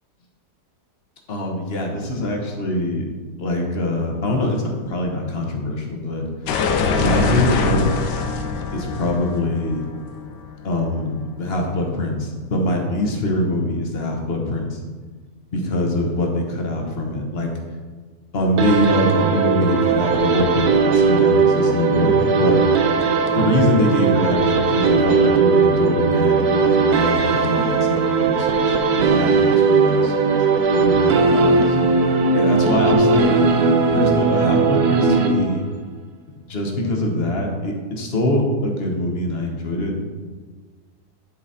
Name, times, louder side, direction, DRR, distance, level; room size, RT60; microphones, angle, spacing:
voice 1, 1.3-3.0 3.4-6.2 7.0-7.8 8.7-9.8 10.6-14.8 15.5-17.5 18.3-22.1 22.4-22.6 23.3-30.4 30.7-32.0 32.3-33.3 33.9-35.6 36.5-40.0, left 1 dB, 40° left, 1 dB, 1.2 m, -23 dB
sound 1, 6.5-11.2, left 4 dB, 80° left, 1.3 m, -24 dB
sound 2, 18.6-35.8, right 4 dB, 70° right, 1.2 m, -18 dB
11.0 x 4.0 x 4.1 m, 1.4 s
omnidirectional pair, 1.8 m